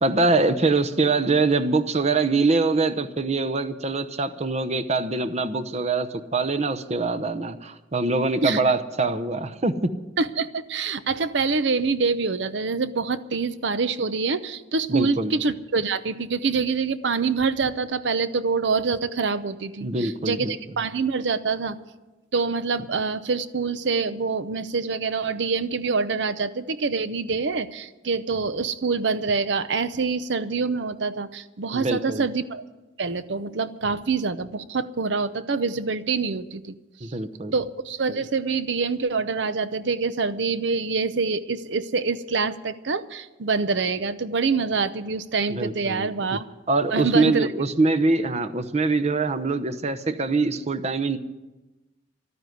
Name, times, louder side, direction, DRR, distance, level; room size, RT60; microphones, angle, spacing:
voice 1, 0.0-9.8 14.9-15.3 19.8-20.5 31.7-32.2 37.0-37.5 45.5-46.1 46.7-51.2, right 3 dB, 35° right, 9 dB, 0.8 m, -23 dB
voice 2, 10.2-21.8 22.3-32.6 33.0-36.7 37.0-37.1 37.5-46.4 46.9-47.5, right 4 dB, 65° right, 13 dB, 0.7 m, -26 dB
13.0 x 9.6 x 9.5 m, 1.1 s
head